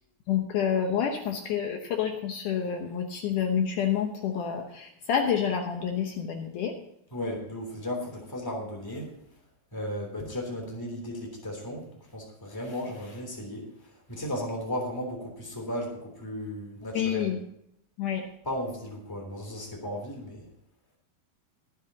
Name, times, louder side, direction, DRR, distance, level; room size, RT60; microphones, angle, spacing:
voice 1, 0.3-6.7 16.9-17.4 18.0-18.2, left 8 dB, 70° left, 4 dB, 2.3 m, -28 dB
voice 2, 7.1-9.1 9.7-11.8 12.1-13.7 14.1-17.3 18.4-20.4, left 1 dB, 5° left, 1 dB, 2.6 m, -35 dB
22.5 x 8.0 x 2.9 m, 0.77 s
omnidirectional pair, 4.1 m